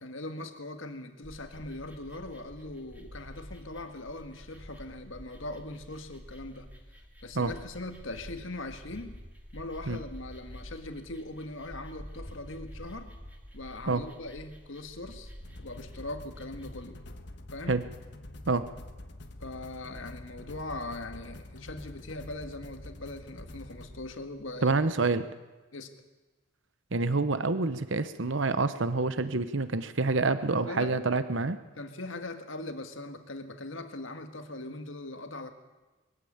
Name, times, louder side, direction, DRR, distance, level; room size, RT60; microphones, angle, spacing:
voice 1, 0.0-6.7 7.2-9.2 9.5-13.1 13.5-15.3 15.6-17.0 17.5-17.8 19.4-24.8 25.2-25.3 25.7-25.9 30.7-31.0 31.8-35.5, left 2 dB, 75° left, 7 dB, 1.8 m, -40 dB
sound 1, 1.2-16.8, equal, 10° right, 2.5 m, -48 dB
sound 2, 15.4-25.1, left 1 dB, 55° left, 1.4 m, -46 dB
voice 2, 24.6-25.2 26.9-31.6, right 3 dB, 65° right, 12 dB, 1.0 m, -27 dB
22.0 x 15.0 x 8.8 m, 1.2 s
head